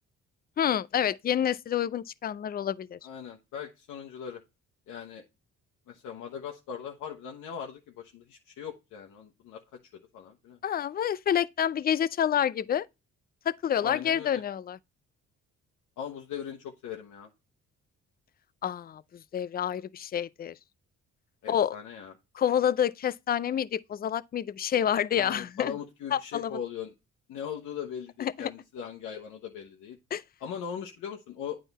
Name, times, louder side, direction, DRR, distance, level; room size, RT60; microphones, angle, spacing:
voice 1, 0.6-3.0 10.6-12.9 13.5-14.8 18.6-20.6 21.5-21.8 22.3-25.7 26.1-26.6 28.2-28.5 30.1-30.2, left 9 dB, 30° left, 0.4 m, -28 dB
voice 2, 3.0-4.4 4.9-5.2 5.9-9.6 10.1-10.6 13.8-14.4 16.0-17.3 21.4-22.1 25.1-26.9 27.3-30.0 30.4-31.6, left 8 dB, 85° left, 1.1 m, -39 dB
9.0 x 3.8 x 4.0 m
cardioid pair, 90°, 30 cm